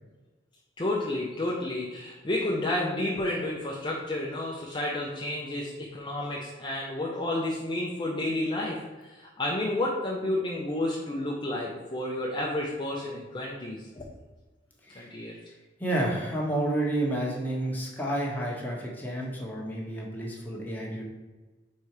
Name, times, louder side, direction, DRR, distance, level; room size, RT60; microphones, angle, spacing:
voice 1, 0.8-8.8 9.0-14.0 14.9-15.4, left 1 dB, 25° left, -3 dB, 0.7 m, -31 dB
voice 2, 14.8-15.2 15.8-21.0, right 1 dB, 10° left, -3 dB, 1.2 m, -30 dB
4.6 x 4.2 x 4.8 m, 1.2 s
head